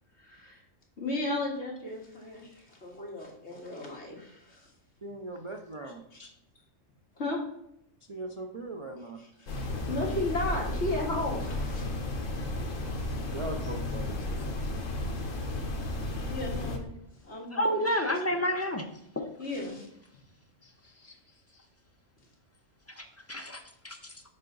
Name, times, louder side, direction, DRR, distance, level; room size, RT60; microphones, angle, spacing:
voice 1, 0.2-0.6 1.0-4.7 6.1-6.2 7.2-7.4 9.4-11.9 16.1-16.9 17.2-17.8 19.4-19.9, left 2 dB, 60° left, -2 dB, 2.1 m, -35 dB
voice 2, 5.0-6.3 8.1-9.2 13.2-14.5 20.6-21.7, right 2 dB, 55° right, 2 dB, 0.3 m, -41 dB
sound 1, 9.5-16.8, left 2 dB, 80° left, 1.4 m, -33 dB
voice 3, 17.5-18.8 19.2-19.3 22.9-24.2, equal, 15° left, 3 dB, 0.5 m, -30 dB
7.3 x 5.6 x 3.9 m, 0.74 s
omnidirectional pair, 1.3 m